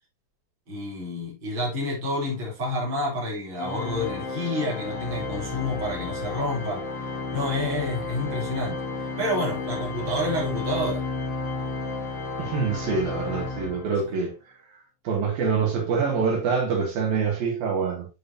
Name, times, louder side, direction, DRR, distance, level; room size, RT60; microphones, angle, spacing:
voice 1, 0.7-6.8 7.3-8.8 9.2-11.0, left 1 dB, 35° right, 4.0 m, -29 dB
Organ, 3.6-14.2, left 3 dB, 30° left, 1.6 m, -32 dB
voice 2, 12.4-14.3 15.0-18.1, right 5 dB, 80° right, 4.3 m, -25 dB
9.9 x 5.3 x 2.8 m
omnidirectional pair, 4.1 m